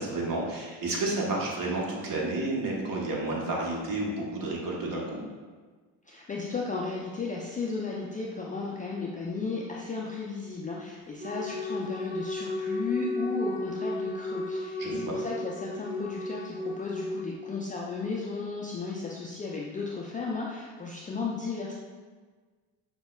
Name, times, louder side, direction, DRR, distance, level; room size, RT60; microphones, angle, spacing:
voice 1, 0.0-5.2 14.8-15.2, right 2 dB, 45° right, -2 dB, 1.0 m, -31 dB
voice 2, 6.1-21.7, left 4 dB, 20° left, -3 dB, 0.3 m, -34 dB
Wind instrument woodwind instrument, 11.2-17.3, left 2 dB, 25° right, 1.2 m, -34 dB
5.4 x 2.1 x 2.2 m, 1.4 s
hypercardioid pair, 60°, 45 cm